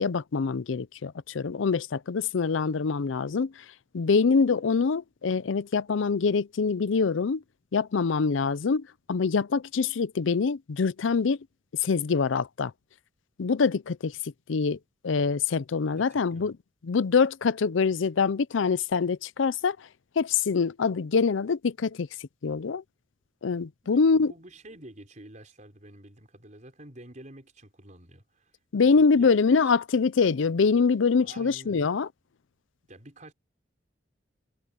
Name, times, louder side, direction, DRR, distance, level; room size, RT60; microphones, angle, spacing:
voice 1, 0.0-3.6 3.9-7.4 7.7-11.4 11.8-12.7 13.4-14.8 15.0-16.6 16.8-19.9 20.2-22.8 23.4-24.3 28.7-32.1, left 5 dB, 80° left, 0.5 m, -25 dB
voice 2, 16.0-16.5 23.8-28.5 28.9-29.7 31.1-31.9 32.9-33.3, right 1 dB, 40° right, 5.3 m, -49 dB
head